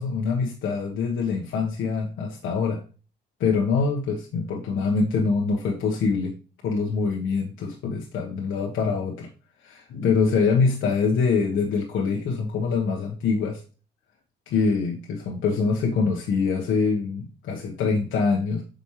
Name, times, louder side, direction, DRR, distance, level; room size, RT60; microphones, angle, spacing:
voice 1, 0.0-2.8 3.4-6.4 6.6-9.3 9.6-13.6 14.5-18.6, left 4 dB, 75° left, -1 dB, 1.2 m, -24 dB
7.0 x 5.1 x 3.1 m, 0.36 s
cardioid pair, 90°, 20 cm